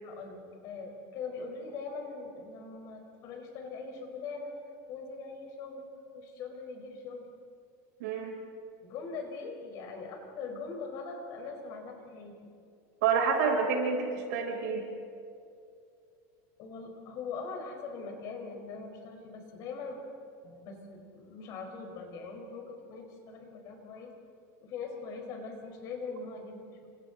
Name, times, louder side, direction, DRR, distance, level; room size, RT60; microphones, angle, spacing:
voice 1, 0.0-4.5 4.9-5.8 6.1-7.3 8.8-12.3 16.6-20.1 20.4-24.1 24.6-26.9, left 4 dB, 40° left, 2 dB, 4.7 m, -41 dB
voice 2, 8.0-8.3 13.0-14.8, right 5 dB, 80° right, -1 dB, 7.1 m, -28 dB
30.0 x 27.0 x 4.1 m, 2.5 s
supercardioid pair, 160°, 9 cm